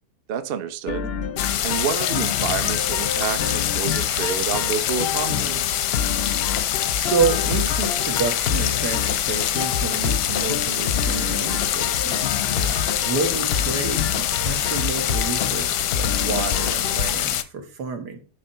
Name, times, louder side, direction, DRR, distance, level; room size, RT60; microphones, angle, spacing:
voice 1, 0.3-1.1 1.6-5.9 12.5-13.0, right 8 dB, 50° right, 10 dB, 0.7 m, -29 dB
sound 1, 0.9-17.1, left 7 dB, 55° left, 0.7 m, -28 dB
sound 2, 1.4-17.4, left 11 dB, 90° left, 1.3 m, -25 dB
voice 2, 6.9-12.6 13.0-18.2, right 5 dB, 85° right, 6 dB, 2.0 m, -29 dB
10.0 x 3.4 x 5.5 m, 0.41 s
omnidirectional pair, 1.7 m